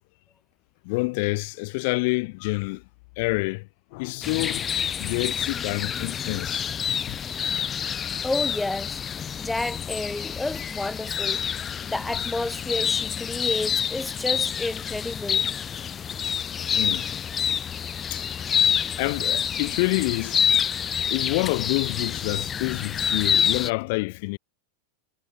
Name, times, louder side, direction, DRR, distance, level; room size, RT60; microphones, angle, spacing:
voice 1, 0.8-2.9 3.2-7.2 16.7-17.1 18.1-18.3 18.6-18.7 19.0-20.5 20.9-24.4, left 27 dB, 50° left, 2.3 m, -28 dB
sound 1, 4.2-23.7, left 8 dB, 25° left, 0.4 m, -27 dB
voice 2, 8.2-9.0 9.4-11.4 11.9-15.5, left 2 dB, 5° left, 5.4 m, -30 dB
figure-of-eight pair, 90°, 0 cm